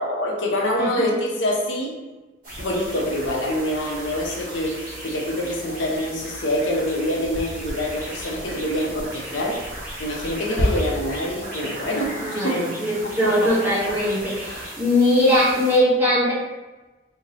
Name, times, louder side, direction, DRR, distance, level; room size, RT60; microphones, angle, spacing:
voice 1, 0.0-1.9 2.6-4.7 5.0-9.6 10.0-12.1 12.4-12.6 13.4-13.9, left 1 dB, 80° left, -1 dB, 0.8 m, -25 dB
voice 2, 0.8-1.1 12.2-16.3, left 1 dB, 10° right, -9 dB, 1.2 m, -20 dB
sound 1, 2.4-15.8, equal, 45° right, 1.3 m, -33 dB
4.5 x 2.8 x 2.8 m, 1.1 s
head